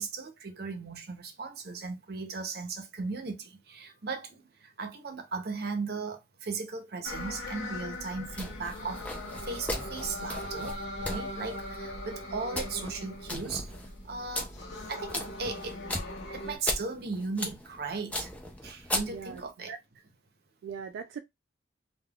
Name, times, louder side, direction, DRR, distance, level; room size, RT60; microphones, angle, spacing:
voice 1, 0.0-13.7 14.0-14.6 14.9-15.8 16.3-18.3 18.6-19.7, right 4 dB, 55° right, 0.6 m, -37 dB
sound 1, 7.0-16.6, left 1 dB, 90° left, 0.7 m, -40 dB
sound 2, 8.3-19.5, left 1 dB, 5° left, 0.4 m, -38 dB
voice 2, 19.1-19.8 20.6-21.2, right 6 dB, 85° right, 0.3 m, -40 dB
3.3 x 2.2 x 2.3 m
head